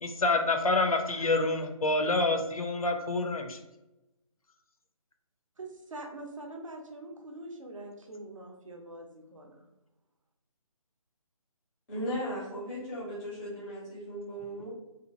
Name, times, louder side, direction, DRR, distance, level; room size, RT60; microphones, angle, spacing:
voice 1, 0.0-3.6, left 2 dB, 75° left, 6 dB, 0.5 m, -27 dB
voice 2, 5.6-9.6, right 2 dB, 65° right, 2 dB, 0.6 m, -44 dB
voice 3, 11.9-14.7, equal, 5° left, -9 dB, 0.5 m, -37 dB
2.8 x 2.3 x 2.6 m, 0.95 s
figure-of-eight pair, 150°, 18 cm